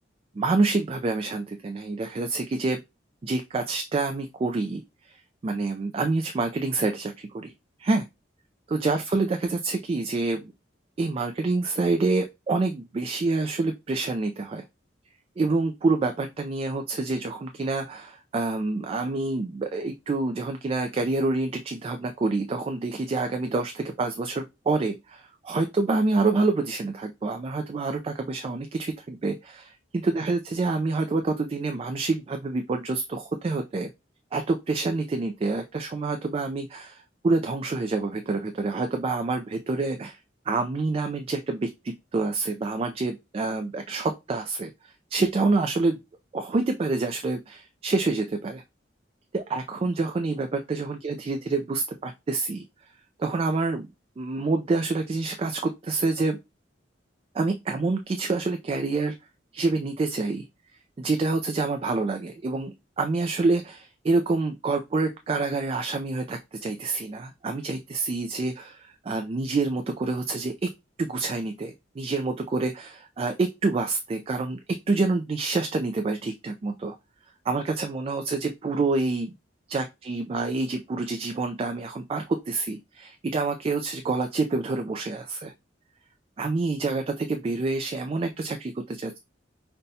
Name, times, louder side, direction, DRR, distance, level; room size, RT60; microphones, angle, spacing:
voice 1, 0.4-2.8 3.2-5.1 5.4-7.5 7.8-8.0 8.7-10.5 11.0-14.6 15.4-33.9 34.3-40.2 40.5-41.7 42.1-46.0 46.3-48.6 49.3-52.6 53.2-53.9 54.2-56.4 57.3-59.1 59.5-60.4 61.0-70.7 71.0-74.6 74.9-77.0 77.5-79.3 79.7-85.5 86.4-89.2, right 3 dB, 30° right, 5 dB, 0.3 m, -27 dB
5.4 x 2.2 x 2.6 m, 0.22 s
head